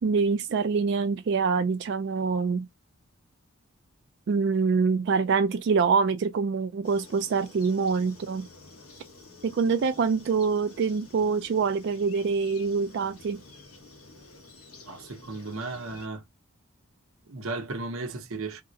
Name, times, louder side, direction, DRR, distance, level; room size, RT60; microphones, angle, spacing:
voice 1, 0.0-2.7 4.3-8.5 9.4-13.4, right 5 dB, 50° right, 0.3 m, -25 dB
sound 1, 6.8-16.1, left 3 dB, 85° left, 1.1 m, -50 dB
voice 2, 14.8-16.2 17.3-18.6, right 3 dB, 70° right, 0.7 m, -35 dB
3.6 x 2.0 x 2.6 m
head